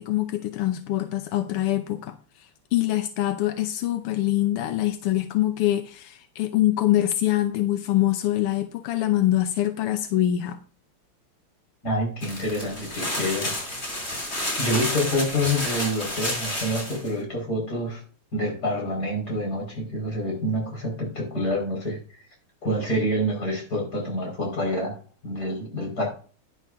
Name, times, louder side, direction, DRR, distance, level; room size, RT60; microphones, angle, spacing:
voice 1, 0.0-10.6, left 14 dB, 85° left, 8 dB, 1.7 m, -24 dB
voice 2, 11.8-13.8 14.6-18.0 18.3-22.0 22.6-26.1, equal, 45° left, 0 dB, 5.4 m, -27 dB
sound 1, 12.2-17.1, left 1 dB, 30° left, 3.4 m, -30 dB
11.5 x 11.0 x 2.6 m, 0.40 s
omnidirectional pair, 2.4 m